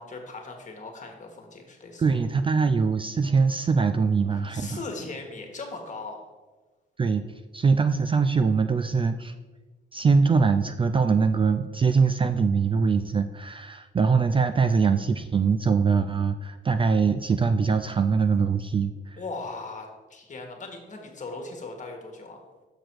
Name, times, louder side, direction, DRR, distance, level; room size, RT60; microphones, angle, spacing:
voice 1, 0.0-2.0 4.3-6.2 19.2-22.4, left 3 dB, 40° left, 3 dB, 1.7 m, -39 dB
voice 2, 2.0-4.8 7.0-7.3 7.5-9.3 9.9-19.2, right 5 dB, 25° right, 9 dB, 0.4 m, -23 dB
6.6 x 6.0 x 4.6 m, 1.3 s
cardioid pair, 90°, 20 cm